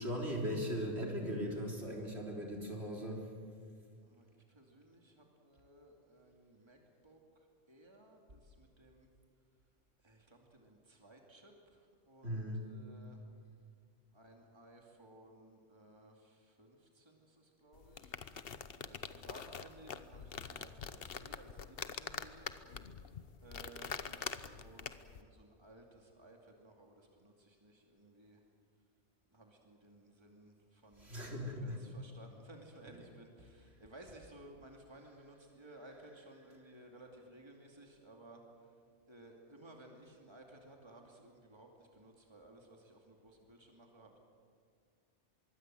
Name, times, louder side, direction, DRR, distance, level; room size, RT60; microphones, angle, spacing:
voice 1, 0.0-3.3 12.2-12.6 31.0-31.8, equal, 65° right, 0 dB, 4.1 m, -38 dB
voice 2, 4.0-6.8 7.0-7.2 7.7-9.1 10.0-13.2 14.1-18.2 18.9-22.5 23.4-24.3 24.6-28.4 29.3-38.4 39.1-44.2, right 1 dB, 25° right, 1 dB, 2.7 m, -58 dB
sound 1, 17.7-25.2, left 7 dB, 60° left, 1.1 m, -45 dB
24.5 x 23.0 x 7.7 m, 2.1 s
omnidirectional pair, 1.2 m